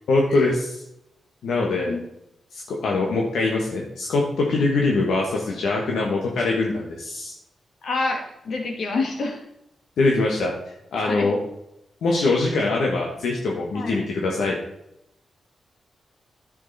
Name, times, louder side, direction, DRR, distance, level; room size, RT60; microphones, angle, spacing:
voice 1, 0.1-0.8 1.4-1.9 2.5-7.3 10.0-10.5 10.9-11.4 12.0-14.6, left 3 dB, 90° left, -1 dB, 1.4 m, -23 dB
voice 2, 7.8-9.4 11.0-11.3 13.7-14.0, left 3 dB, 70° left, 2 dB, 2.1 m, -27 dB
9.9 x 6.5 x 4.1 m, 0.81 s
cardioid pair, 80°, 0 cm